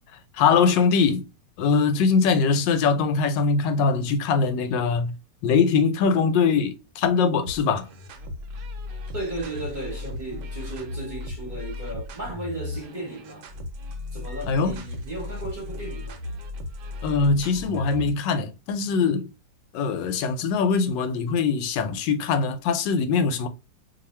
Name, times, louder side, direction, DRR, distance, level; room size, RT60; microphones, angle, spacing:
voice 1, 0.3-1.3 1.6-5.2 5.4-7.9 14.5-14.8 17.0-19.3 19.7-23.5, left 5 dB, 90° left, 1.3 m, -22 dB
sound 1, 7.4-18.3, left 2 dB, 80° right, 1.3 m, -36 dB
voice 2, 9.1-13.5 14.1-16.2, right 2 dB, 30° right, 1.1 m, -35 dB
2.7 x 2.7 x 4.2 m
omnidirectional pair, 1.9 m